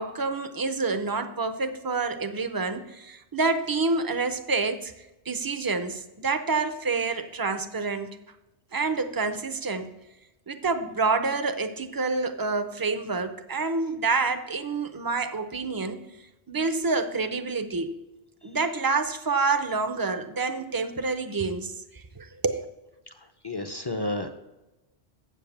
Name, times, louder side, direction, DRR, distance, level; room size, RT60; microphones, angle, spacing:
voice 1, 0.0-4.9 5.3-8.2 8.7-9.9 10.5-16.0 16.5-17.9 18.4-22.7, right 4 dB, 30° right, 9 dB, 0.4 m, -28 dB
voice 2, 23.1-24.3, left 2 dB, 35° left, 7 dB, 0.4 m, -32 dB
7.6 x 7.0 x 7.1 m, 1.0 s
omnidirectional pair, 1.1 m